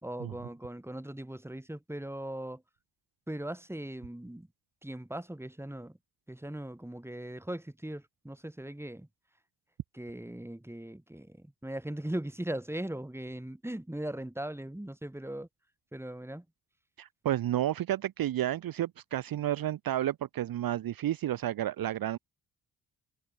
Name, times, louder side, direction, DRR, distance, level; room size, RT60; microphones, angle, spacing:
voice 1, 0.0-2.6 3.3-4.5 4.8-6.0 6.3-9.1 9.9-15.5 15.9-16.4, right 1 dB, 5° right, 2.6 m, -39 dB
voice 2, 17.0-22.2, right 12 dB, 60° right, 0.8 m, -31 dB
supercardioid pair, 50°, 41 cm